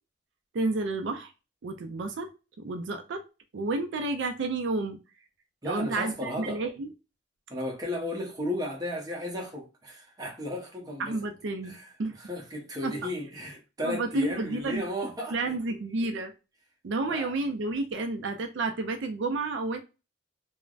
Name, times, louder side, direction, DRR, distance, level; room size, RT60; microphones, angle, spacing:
voice 1, 0.5-1.3 1.6-2.3 2.6-3.2 3.5-5.0 5.6-6.9 11.0-12.2 12.8-12.9 13.8-14.8 15.3-16.3 16.8-19.8, right 3 dB, 70° right, 0.4 m, -31 dB
voice 2, 5.6-6.6 7.5-11.2 11.6-11.9 12.2-15.5 15.9-16.2 17.0-17.3, left 1 dB, 20° right, 0.8 m, -35 dB
3.2 x 2.1 x 2.3 m
head